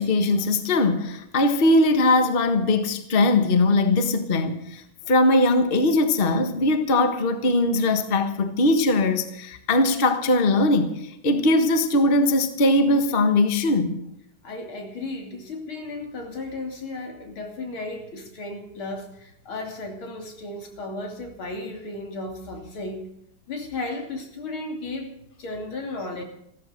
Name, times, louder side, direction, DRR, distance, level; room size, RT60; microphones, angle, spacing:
voice 1, 0.0-4.8 5.1-10.9 11.2-14.0, left 2 dB, 30° left, 8 dB, 1.4 m, -20 dB
voice 2, 14.4-23.1 23.5-25.1 25.4-26.2, left 2 dB, 75° left, 3 dB, 3.7 m, -34 dB
15.0 x 14.0 x 6.5 m, 0.78 s
omnidirectional pair, 2.3 m